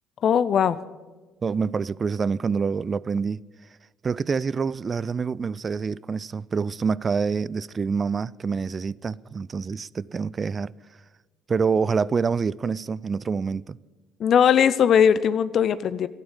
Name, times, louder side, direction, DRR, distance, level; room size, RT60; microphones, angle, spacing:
voice 1, 0.2-0.8 14.2-16.1, left 8 dB, 55° left, 0.5 m, -19 dB
voice 2, 1.4-3.4 4.0-10.7 11.5-13.8, right 5 dB, 35° right, 0.4 m, -26 dB
12.0 x 11.0 x 9.0 m
hypercardioid pair, 55°, 0 cm